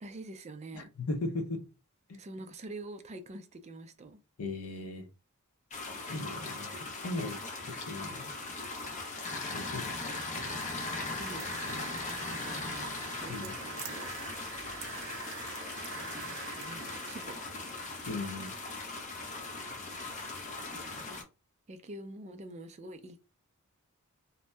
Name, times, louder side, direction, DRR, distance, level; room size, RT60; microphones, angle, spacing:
voice 1, 0.0-0.9 2.2-4.2 11.2-14.1 16.5-17.6 17.9-18.1 21.7-23.2, right 2 dB, 30° right, 0.4 m, -46 dB
voice 2, 0.7-1.6 2.1-2.2 4.4-5.1 6.1-6.7 7.0-7.5 7.9-8.3 9.5-10.0 13.3-13.5 18.1-18.5, left 2 dB, 75° left, 0.6 m, -37 dB
sound 1, 5.7-21.2, left 3 dB, 35° left, 0.6 m, -39 dB
sound 2, 10.1-18.3, right 5 dB, 60° right, 0.7 m, -45 dB
2.6 x 2.1 x 3.2 m
head